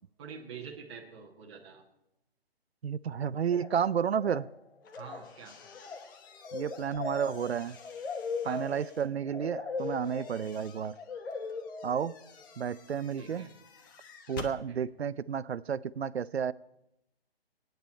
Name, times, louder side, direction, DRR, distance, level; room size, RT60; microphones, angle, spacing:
voice 1, 0.2-1.8 5.0-5.6 8.4-8.6 13.2-13.5 14.7-14.8, right 6 dB, 30° right, -2 dB, 1.6 m, -46 dB
voice 2, 2.8-4.5 6.5-7.8 8.4-10.9 11.8-12.2 12.6-13.5 14.3-16.5, right 7 dB, 90° right, 18 dB, 0.6 m, -31 dB
sound 1, 3.4-3.9 4.1-4.6 4.8-12.5, left 4 dB, 90° left, 1.4 m, -40 dB
sound 2, 4.8-9.1 9.8-14.6, left 5 dB, 20° left, 0.8 m, -52 dB
23.0 x 9.5 x 4.4 m, 0.86 s
hypercardioid pair, 155°, 31 cm